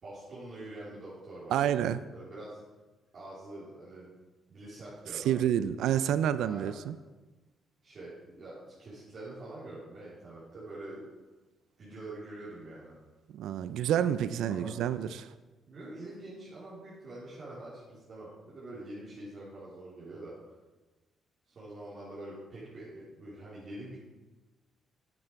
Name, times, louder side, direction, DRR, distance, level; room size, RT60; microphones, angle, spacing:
voice 1, 0.0-1.6 2.1-2.6 3.1-4.1 4.5-5.4 6.4-6.7 7.8-11.0 11.8-13.0 14.5-14.7 15.7-20.5 21.5-24.0, right 1 dB, 50° right, -10 dB, 3.7 m, -45 dB
voice 2, 1.5-2.0 5.2-7.0 13.3-15.3, right 10 dB, 80° right, 14 dB, 0.4 m, -28 dB
9.9 x 8.8 x 4.6 m, 1.2 s
cardioid pair, 90°, 0 cm